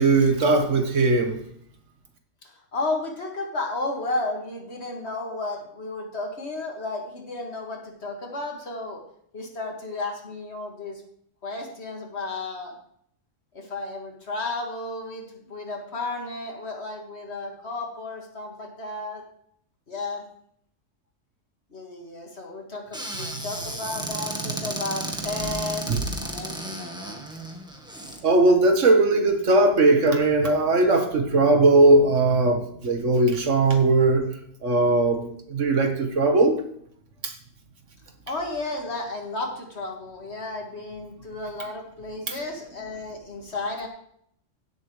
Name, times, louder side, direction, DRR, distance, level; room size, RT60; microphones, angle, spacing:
voice 1, 0.0-1.4 25.9-26.0 28.2-34.3 34.6-36.6 37.2-37.3 42.3-42.4, right 2 dB, 70° right, 5 dB, 1.7 m, -19 dB
voice 2, 2.4-9.0 9.3-11.0 11.4-12.7 13.5-19.2 19.9-20.3 21.7-25.9 26.2-27.2 38.3-43.9, left 2 dB, 60° left, 1 dB, 2.3 m, -33 dB
Squeak / Cupboard open or close, 22.9-28.2, right 1 dB, 5° right, 1.3 m, -33 dB
17.0 x 7.7 x 3.3 m, 0.67 s
omnidirectional pair, 1.3 m